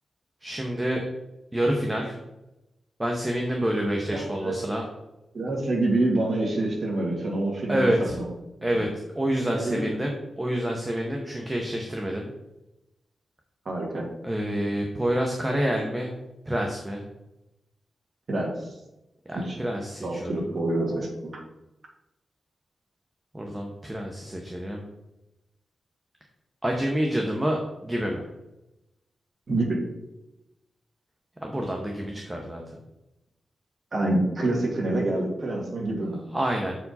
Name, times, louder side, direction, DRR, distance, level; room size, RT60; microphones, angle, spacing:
voice 1, 0.4-1.0 1.5-2.2 3.0-4.9 7.7-8.2 8.6-12.3 14.2-16.1 16.5-17.0 19.3-20.5 23.3-24.8 26.6-28.2 31.4-32.6 36.3-36.8, equal, 15° right, 1 dB, 0.9 m, -28 dB
voice 2, 4.1-4.6 5.3-8.3 8.7-8.8 9.5-10.0 13.7-14.0 18.3-18.7 19.3-19.6 20.0-21.4 29.5-29.8 33.9-36.2, right 2 dB, 45° right, -3 dB, 2.0 m, -27 dB
7.1 x 4.7 x 4.1 m, 0.93 s
wide cardioid pair, 125°, 0 cm